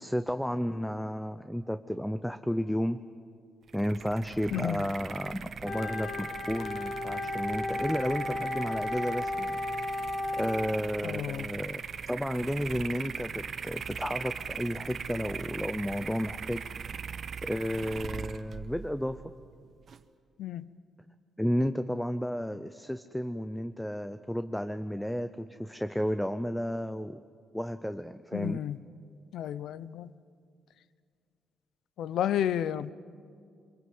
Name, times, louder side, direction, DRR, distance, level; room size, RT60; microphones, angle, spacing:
voice 1, 0.0-3.0 3.7-9.6 10.3-11.8 12.1-16.6 17.4-19.2 21.4-27.2 27.5-28.6, equal, 5° left, 10 dB, 0.6 m, -32 dB
sound 1, 3.7-20.0, right 6 dB, 50° right, 0.8 m, -40 dB
voice 2, 4.5-4.9 11.0-11.5 20.4-20.7 28.3-28.8 29.3-30.1 32.0-32.9, left 10 dB, 85° left, 16 dB, 0.7 m, -31 dB
Wind instrument woodwind instrument, 5.6-10.8, left 2 dB, 40° left, 1.5 m, -34 dB
24.0 x 22.5 x 7.9 m, 2.2 s
cardioid pair, 125°, 0 cm